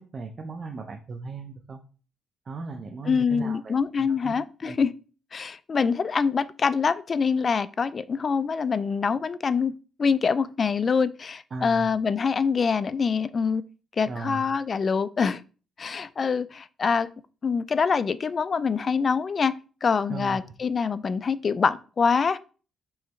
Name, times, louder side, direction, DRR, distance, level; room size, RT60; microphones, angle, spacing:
voice 1, 0.0-1.8 2.5-3.7 4.0-4.4 4.6-4.8 11.5-11.9 14.1-14.5 20.1-20.5, right 4 dB, 40° right, 0.6 m, -37 dB
voice 2, 3.1-4.9 5.3-13.6 14.0-15.4 15.8-17.1 17.4-22.4, left 5 dB, 40° left, 0.3 m, -25 dB
4.7 x 3.3 x 3.1 m
cardioid pair, 90°, 0 cm